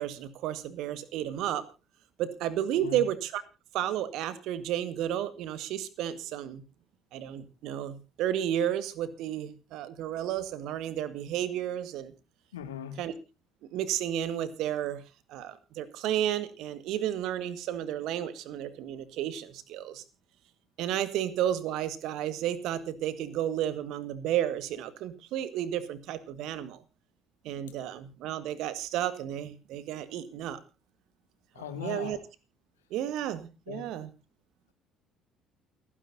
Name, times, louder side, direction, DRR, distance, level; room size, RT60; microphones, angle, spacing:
voice 1, 0.0-1.6 2.2-3.4 3.7-6.6 7.1-12.1 13.0-13.1 13.6-15.0 15.3-20.0 20.8-26.8 27.4-30.6 31.6-32.2 32.9-34.1, right 11 dB, 60° right, 15 dB, 1.6 m, -32 dB
voice 2, 12.5-13.0 31.5-32.2 33.7-33.8, left 9 dB, 75° left, 9 dB, 1.9 m, -39 dB
28.5 x 9.9 x 2.6 m, 0.30 s
figure-of-eight pair, 50°, 0 cm